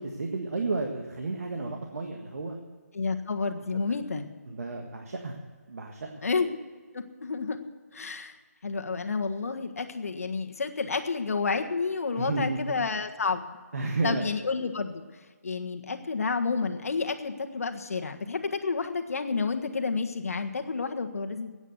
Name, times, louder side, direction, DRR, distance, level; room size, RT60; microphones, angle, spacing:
voice 1, 0.0-2.6 3.7-3.9 4.5-5.4 5.7-6.2 12.2-12.8 13.7-14.3, right 3 dB, 65° right, 3 dB, 1.7 m, -32 dB
voice 2, 2.9-4.3 6.2-6.5 6.9-7.6 7.9-8.3 8.6-13.6 14.0-15.0 15.4-21.5, left 4 dB, 65° left, 6 dB, 1.5 m, -30 dB
14.0 x 9.0 x 8.0 m, 1.5 s
hypercardioid pair, 170°, 9 cm